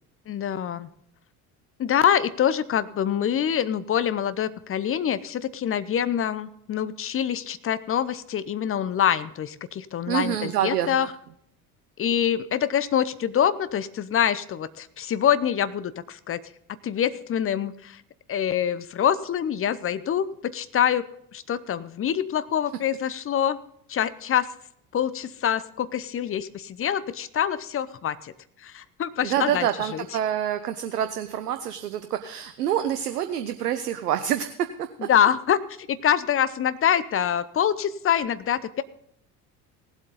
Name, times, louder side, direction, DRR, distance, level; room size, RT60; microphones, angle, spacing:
voice 1, 0.3-0.9 1.8-11.1 12.0-16.4 16.8-18.0 18.3-21.1 21.3-23.6 23.9-24.5 24.9-28.3 28.6-30.0 35.1-38.8, left 9 dB, 30° left, 15 dB, 0.7 m, -25 dB
voice 2, 10.1-11.1 29.2-35.1, right 10 dB, 80° right, 9 dB, 0.8 m, -27 dB
18.0 x 8.0 x 3.9 m, 0.69 s
figure-of-eight pair, 60°, 46 cm